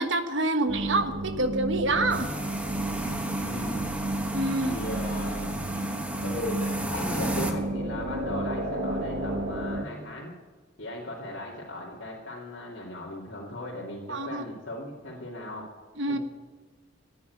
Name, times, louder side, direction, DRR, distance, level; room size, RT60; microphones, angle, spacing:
voice 1, 0.0-2.3 4.3-4.7 14.1-14.4 16.0-16.2, right 2 dB, 65° right, 8 dB, 1.4 m, -27 dB
sound 1, 0.7-9.8, right 1 dB, 85° right, 1.9 m, -32 dB
sound 2, 2.1-7.5, right 1 dB, 5° right, 1.3 m, -34 dB
voice 2, 3.4-3.9 4.6-5.5 6.2-10.3 10.8-15.7 16.1-16.2, left 1 dB, 65° left, -5 dB, 2.6 m, -37 dB
14.0 x 9.4 x 9.4 m, 1.4 s
head